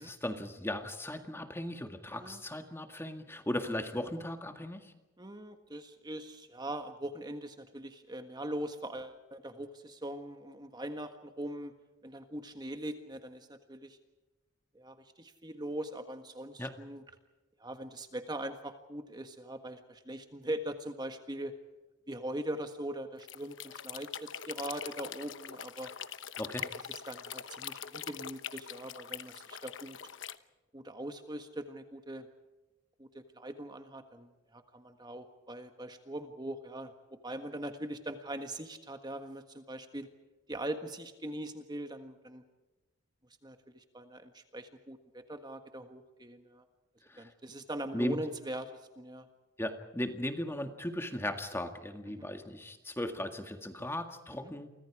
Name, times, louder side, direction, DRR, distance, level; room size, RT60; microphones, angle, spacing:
voice 1, 0.0-4.9 16.6-16.7 26.4-26.7 47.0-47.3 47.9-48.2 49.6-54.7, left 1 dB, 10° left, 6 dB, 1.9 m, -37 dB
voice 2, 5.2-11.7 12.0-14.0 14.7-17.0 17.6-21.5 22.1-25.9 26.6-30.0 30.7-32.3 33.0-40.1 40.5-42.4 43.4-46.6 47.2-49.3 52.1-52.3 54.4-54.5, right 1 dB, 20° right, 7 dB, 1.6 m, -41 dB
sound 1, 23.2-30.4, left 8 dB, 75° left, 1.0 m, -43 dB
29.5 x 25.0 x 4.9 m, 1.1 s
head